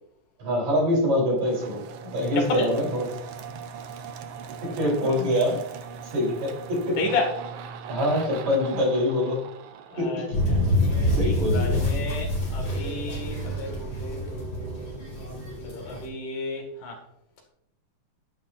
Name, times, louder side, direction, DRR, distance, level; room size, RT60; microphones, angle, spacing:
voice 1, 0.4-3.1 4.8-5.6 6.1-6.9 7.9-9.4 10.0-10.4 11.1-11.7, left 1 dB, 60° right, -2 dB, 4.9 m, -25 dB
sound 1, 1.4-11.0, right 6 dB, 75° right, 1.4 m, -40 dB
voice 2, 2.4-2.7 7.0-7.3 9.9-10.6 11.2-14.9 15.6-17.0, left 3 dB, 75° left, 1 dB, 3.5 m, -32 dB
sound 2, 10.3-16.1, left 1 dB, 40° left, 4.9 m, -26 dB
10.5 x 9.9 x 2.5 m, 0.73 s
omnidirectional pair, 3.6 m